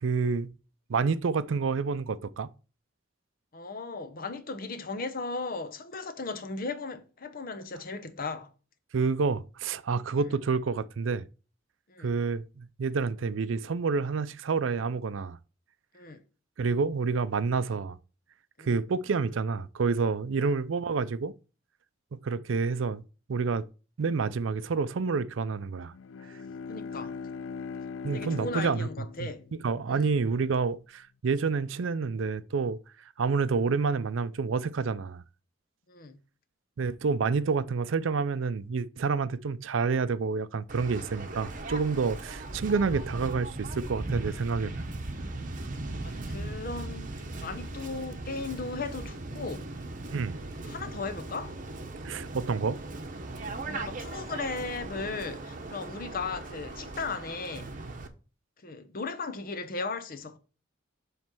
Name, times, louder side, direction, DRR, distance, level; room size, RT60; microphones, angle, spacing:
voice 1, 0.0-0.5 0.9-2.5 8.9-11.3 12.0-15.4 16.6-18.0 18.6-21.3 22.2-23.0 23.3-23.6 24.0-25.9 28.0-28.9 29.2-29.3 29.6-32.8 33.2-35.2 36.8-44.8 50.1-50.4 52.0-52.8, right 4 dB, 85° right, 0.5 m, -28 dB
voice 2, 3.5-8.5 11.9-12.1 15.9-16.2 18.6-18.8 20.4-20.5 26.7-27.1 28.1-29.5 29.9-30.1 35.9-36.2 46.0-49.7 50.6-51.5 53.6-57.7 58.6-60.4, left 3 dB, 50° left, 0.9 m, -37 dB
Bowed string instrument, 25.8-30.5, left 5 dB, 85° left, 0.4 m, -40 dB
Waves surf, 40.7-58.1, right 2 dB, 45° right, 0.9 m, -38 dB
7.4 x 3.3 x 6.0 m
head